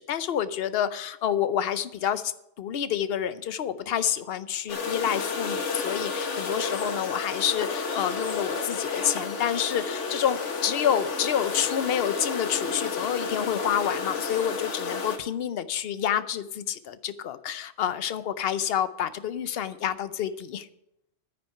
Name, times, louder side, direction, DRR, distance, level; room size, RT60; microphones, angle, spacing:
voice 1, 0.0-2.3 2.6-20.7, left 9 dB, 60° left, 13 dB, 0.9 m, -28 dB
sound 1, 4.7-15.2, left 5 dB, 80° left, 1.5 m, -31 dB
9.7 x 9.4 x 5.7 m, 0.79 s
omnidirectional pair, 1.2 m